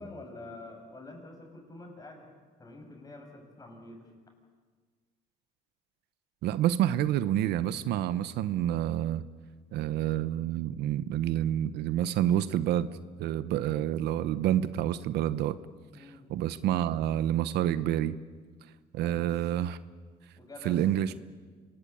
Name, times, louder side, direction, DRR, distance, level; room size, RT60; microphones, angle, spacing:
voice 1, 0.0-2.3 2.6-4.1 15.9-16.3 19.0-19.3 20.4-20.8, left 2 dB, 20° left, 3 dB, 6.6 m, -47 dB
voice 2, 6.4-9.2 9.7-12.9 13.2-15.6 16.0-18.2 18.9-19.8 20.6-21.2, right 11 dB, 80° right, 15 dB, 0.9 m, -28 dB
26.5 x 19.5 x 8.8 m, 1.5 s
cardioid pair, 110°, 17 cm